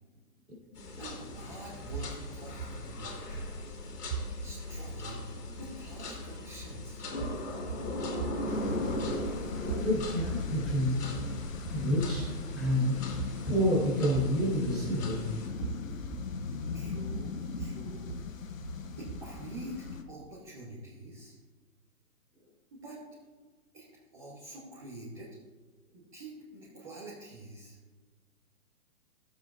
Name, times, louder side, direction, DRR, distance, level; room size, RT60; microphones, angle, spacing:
sound 1, 0.8-15.5, left 2 dB, 80° left, 2.3 m, -38 dB
voice 1, 1.0-3.4 4.4-7.0 16.7-18.1 19.0-21.4 22.7-23.0 23.7-23.8 24.1-25.4 25.9-27.8, right 1 dB, 20° right, -7 dB, 1.2 m, -46 dB
sound 2, 1.9-4.7 7.1-19.5, right 5 dB, 65° right, 0.9 m, -41 dB
sound 3, 8.5-20.0, left 5 dB, 60° left, 0.9 m, -40 dB
voice 2, 9.8-11.0 11.7-12.9 13.5-15.3, equal, ahead, -10 dB, 3.1 m, -28 dB
16.0 x 7.3 x 2.6 m, 1.3 s
hypercardioid pair, 175°, 46 cm